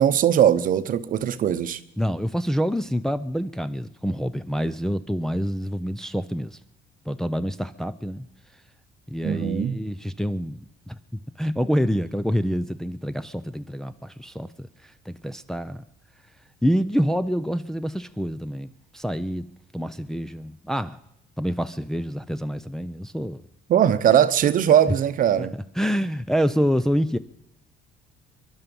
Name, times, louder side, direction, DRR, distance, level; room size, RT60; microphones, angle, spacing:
voice 1, 0.0-1.8 9.2-9.8 23.7-25.5, right 10 dB, 55° right, 0.9 m, -20 dB
voice 2, 2.0-6.6 7.1-8.3 9.1-15.8 16.6-19.5 19.7-21.0 21.4-23.4 25.4-25.5 25.8-27.2, equal, 5° left, 0.5 m, -27 dB
23.5 x 11.5 x 5.4 m
cardioid pair, 110°, 17 cm